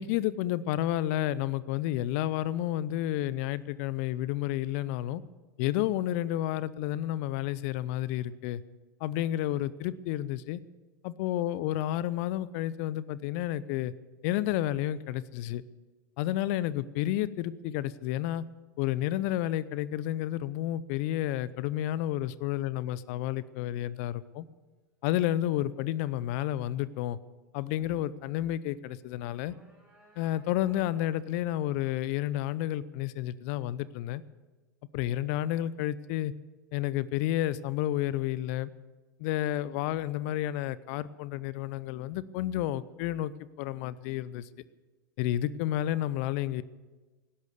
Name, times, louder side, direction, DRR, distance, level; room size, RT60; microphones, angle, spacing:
voice 1, 0.0-5.2 5.6-8.6 9.0-10.6 11.0-13.9 14.2-15.6 16.2-18.4 18.8-24.5 25.0-27.2 27.5-29.5 30.2-34.2 34.9-36.3 36.7-38.7 39.2-43.3 43.6-44.5 45.2-46.6, left 13 dB, 50° left, 19 dB, 0.6 m, -31 dB
sound 1, 29.1-31.4, equal, 10° right, 5.1 m, -60 dB
18.0 x 11.5 x 6.8 m, 1.2 s
hypercardioid pair, 95°, 10 cm